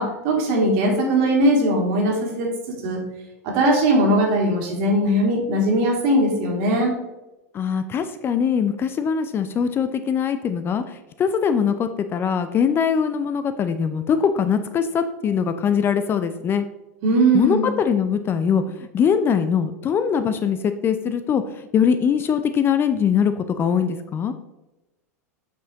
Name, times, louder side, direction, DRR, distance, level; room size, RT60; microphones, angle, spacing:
voice 1, 0.0-2.5 2.8-3.0 3.4-6.9 17.0-17.7, right 1 dB, 50° right, 0 dB, 2.0 m, -19 dB
voice 2, 7.5-16.7 17.3-24.3, left 7 dB, 25° left, 10 dB, 0.4 m, -22 dB
8.0 x 4.7 x 2.9 m, 0.98 s
figure-of-eight pair, 90°, 9 cm